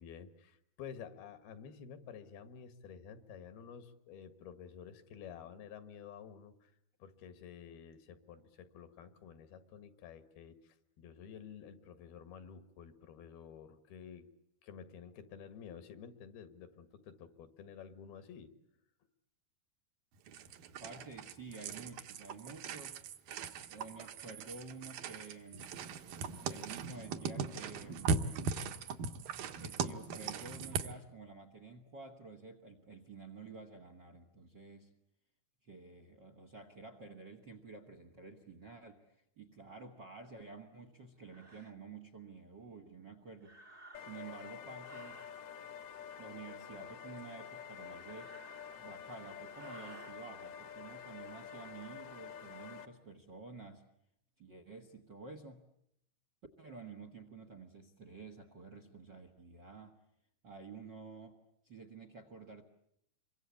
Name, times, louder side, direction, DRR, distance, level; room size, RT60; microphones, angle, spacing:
voice 1, 0.0-6.7 7.0-14.3 14.6-18.5, left 7 dB, 80° left, 10 dB, 3.5 m, -51 dB
sound 1, 20.3-31.0, right 5 dB, 70° right, 2.7 m, -39 dB
voice 2, 20.8-23.0 23.7-25.7 26.5-28.2 29.6-34.9 35.6-43.6 44.0-45.2 46.2-48.3 48.8-53.8 54.4-55.6 56.6-60.0 60.4-61.4 61.6-62.6, right 4 dB, 55° right, 8 dB, 1.2 m, -51 dB
sound 2, 40.3-40.5 41.2-41.7 43.4-44.3 44.8-45.4 47.6-49.0 49.5-50.2, right 2 dB, 30° right, 1.2 m, -57 dB
sound 3, 43.9-52.9, left 8 dB, 55° left, 1.8 m, -48 dB
28.0 x 24.0 x 8.5 m, 0.76 s
omnidirectional pair, 4.4 m